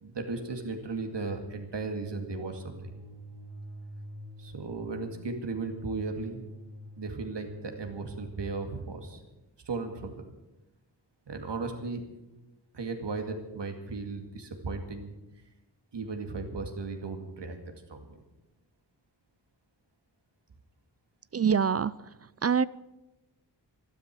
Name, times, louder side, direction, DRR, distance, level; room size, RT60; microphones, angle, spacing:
voice 1, 0.0-2.9 4.4-6.4 7.0-9.2 9.7-10.3 11.3-12.0 12.7-15.1 15.9-17.6 17.9-18.2, right 3 dB, 75° right, 5 dB, 2.3 m, -36 dB
sound 1, 2.7-8.7, right 1 dB, 55° right, 2.1 m, -46 dB
voice 2, 21.3-22.6, right 7 dB, 35° right, 19 dB, 0.4 m, -26 dB
13.0 x 12.0 x 7.5 m, 1.0 s
cardioid pair, 55°, 42 cm